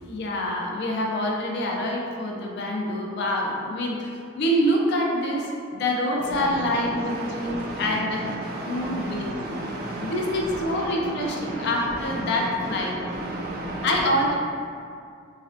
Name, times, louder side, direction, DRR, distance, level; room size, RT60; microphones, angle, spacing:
voice 1, 0.0-4.1 4.4-8.4 8.7-9.4 10.0-12.9 13.8-14.3, left 1 dB, 55° left, -1 dB, 0.3 m, -26 dB
voice 2, 6.4-11.7 12.0-12.3 12.6-13.9, right 1 dB, 45° right, -3 dB, 0.4 m, -33 dB
2.4 x 2.1 x 2.5 m, 2.3 s
head